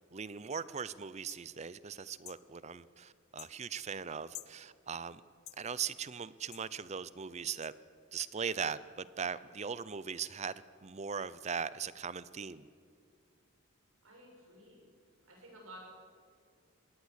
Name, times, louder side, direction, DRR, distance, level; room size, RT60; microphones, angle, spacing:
voice 1, 0.1-5.2 5.6-7.7 8.1-10.5 10.8-12.6, right 6 dB, 35° right, 17 dB, 0.5 m, -39 dB
sound 1, 1.3-1.4 2.2-2.4 3.4-3.5 4.3-4.6 5.5-5.6 6.5-6.7 7.6-7.7, left 15 dB, 90° left, 0.7 m, -48 dB
voice 2, 14.0-14.9 15.2-15.8, right 1 dB, 90° right, -1 dB, 6.9 m, -53 dB
20.5 x 17.5 x 8.2 m, 2.2 s
head